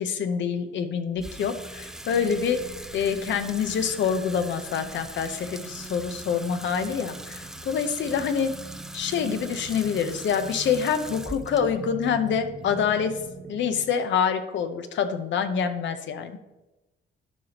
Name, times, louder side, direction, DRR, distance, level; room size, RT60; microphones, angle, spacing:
voice 1, 0.0-2.6 2.9-8.5 8.9-13.2 13.5-16.4, left 7 dB, 70° left, 9 dB, 0.8 m, -26 dB
Water tap faucet / Sink (filling or washing), 1.2-13.5, right 1 dB, 5° right, 0.4 m, -42 dB
sound 1, 1.2-14.0, right 5 dB, 50° right, 0.7 m, -43 dB
12.0 x 5.0 x 2.9 m, 1.0 s
cardioid pair, 90°, 20 cm